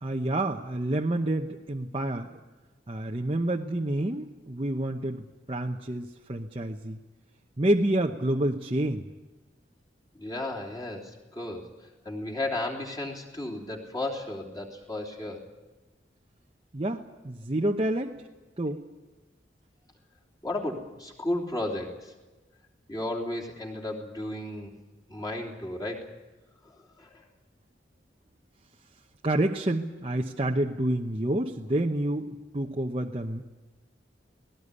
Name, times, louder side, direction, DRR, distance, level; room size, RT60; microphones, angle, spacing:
voice 1, 0.0-2.4 2.9-7.0 7.6-9.0 16.7-18.2 18.6-18.8 29.2-33.6, right 1 dB, 30° right, 1 dB, 0.9 m, -28 dB
voice 2, 10.2-11.7 12.0-15.4 20.4-22.1 22.9-24.7 25.1-26.1 26.6-27.2, left 1 dB, 20° left, -1 dB, 3.3 m, -34 dB
18.5 x 17.5 x 9.8 m, 1.2 s
head